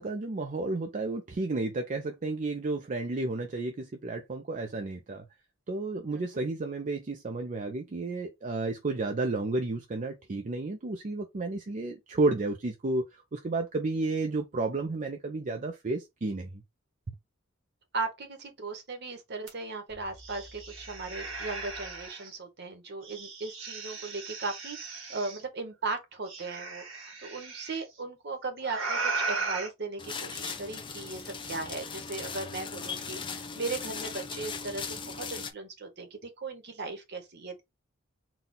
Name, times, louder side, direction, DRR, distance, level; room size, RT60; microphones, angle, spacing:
voice 1, 0.0-5.3 5.7-16.6 17.1-17.2, right 2 dB, 40° right, 0.5 m, -32 dB
voice 2, 17.9-37.6, right 3 dB, 55° right, 1.1 m, -37 dB
sound 1, 19.5-19.6 19.9-22.3 23.0-25.4 26.3-27.8 28.6-29.7, right 4 dB, 80° right, 1.5 m, -37 dB
sound 2, 30.0-35.5, left 5 dB, 25° left, 0.5 m, -38 dB
4.1 x 2.3 x 3.7 m
head